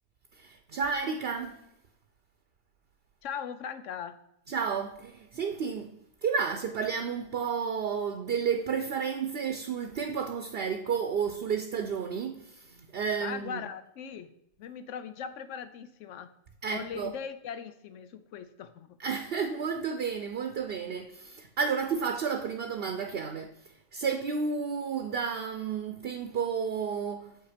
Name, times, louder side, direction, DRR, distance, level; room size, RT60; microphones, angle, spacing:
voice 1, 0.3-1.6 4.5-5.9 6.2-13.6 16.6-17.1 19.0-27.4, right 6 dB, 60° right, 0.8 m, -32 dB
voice 2, 3.2-4.1 13.2-14.3 14.6-16.3 16.7-19.0, left 7 dB, 85° left, 1.0 m, -39 dB
7.2 x 5.7 x 5.0 m
omnidirectional pair, 1.2 m